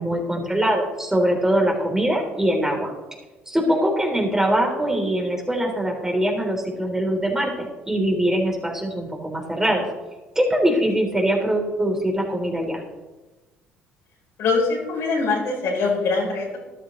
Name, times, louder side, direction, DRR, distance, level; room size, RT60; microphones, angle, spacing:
voice 1, 0.0-2.9 3.5-9.9 10.4-12.8, right 1 dB, 10° right, 0 dB, 3.4 m, -22 dB
voice 2, 14.4-16.6, left 3 dB, 65° left, -1 dB, 4.1 m, -23 dB
13.5 x 11.5 x 3.2 m, 1.2 s
hypercardioid pair, 60°, 5 cm